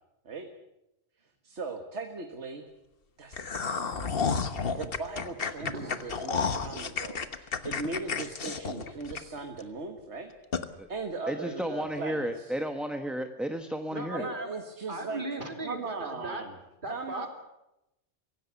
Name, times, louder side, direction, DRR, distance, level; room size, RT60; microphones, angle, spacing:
voice 1, 1.4-2.6 3.2-10.3 10.9-12.5 14.1-15.2 15.6-16.6 16.9-17.3, right 3 dB, 65° right, 5 dB, 1.9 m, -39 dB
sound 1, 3.3-9.6 10.0-10.1 10.5-10.7, left 5 dB, 50° left, 1.4 m, -31 dB
voice 2, 5.6-6.0 6.5-6.8 13.9-14.6 14.9-16.4 16.8-17.3, right 1 dB, 40° right, 4 dB, 3.1 m, -37 dB
voice 3, 11.3-14.3, right 1 dB, ahead, 6 dB, 1.0 m, -33 dB
24.5 x 16.5 x 8.3 m, 0.90 s
omnidirectional pair, 1.3 m